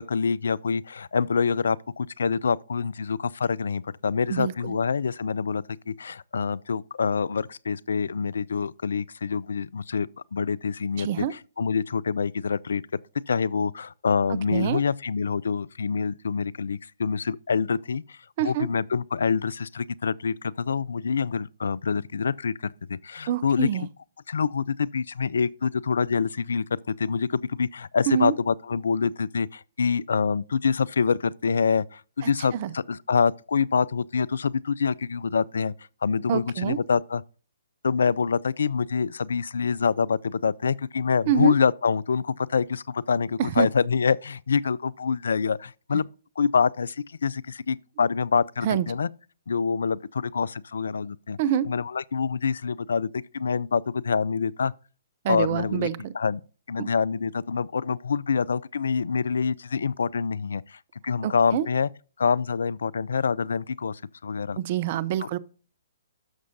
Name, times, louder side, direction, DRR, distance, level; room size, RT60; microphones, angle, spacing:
voice 1, 0.0-12.8 13.3-23.9 24.3-35.7 36.0-37.2 37.8-46.1 46.4-49.1 49.5-51.4 51.6-54.7 55.3-55.9 56.1-56.4 56.7-61.9 62.2-64.6 65.2-65.3, left 5 dB, 70° left, 0.3 m, -26 dB
voice 2, 4.3-4.8 11.0-11.3 14.5-14.8 18.4-18.7 23.3-23.9 28.1-28.3 32.2-32.7 36.3-36.8 41.3-41.5 43.4-43.7 48.6-48.9 51.4-51.7 55.2-56.1 56.8-56.9 61.2-61.7 64.6-65.4, right 10 dB, 45° right, 0.6 m, -26 dB
12.5 x 6.2 x 2.6 m
figure-of-eight pair, 130°, 0 cm